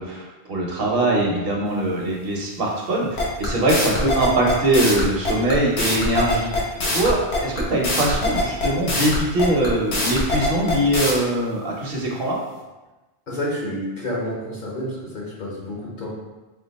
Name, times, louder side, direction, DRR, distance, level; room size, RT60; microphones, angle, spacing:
voice 1, 0.0-12.4, right 1 dB, 65° right, -2 dB, 1.0 m, -22 dB
sound 1, 3.2-11.1, left 2 dB, 75° left, 1.2 m, -23 dB
voice 2, 13.3-16.1, left 1 dB, 50° left, -5 dB, 1.1 m, -29 dB
4.3 x 2.3 x 4.0 m, 1.1 s
omnidirectional pair, 1.0 m